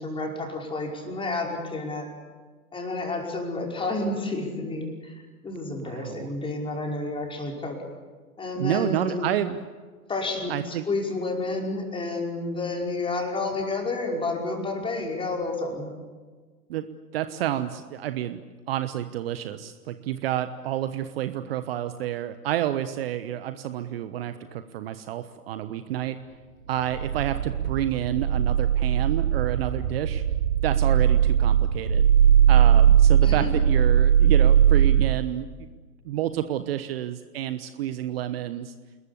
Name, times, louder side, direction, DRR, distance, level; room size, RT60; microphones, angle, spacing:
voice 1, 0.0-2.1 2.7-7.8 8.4-9.3 10.1-15.9 33.2-33.5, left 2 dB, 10° left, 1 dB, 5.3 m, -30 dB
voice 2, 5.8-6.3 8.6-9.6 10.5-10.8 16.7-16.9 17.1-18.4 18.7-26.2 26.7-30.2 30.6-32.1 32.5-35.5 36.0-38.7, right 12 dB, 40° right, 11 dB, 1.2 m, -29 dB
sound 1, 26.8-35.1, right 9 dB, 65° right, 3.2 m, -19 dB
29.0 x 21.0 x 8.5 m, 1.5 s
figure-of-eight pair, 110°, 45 cm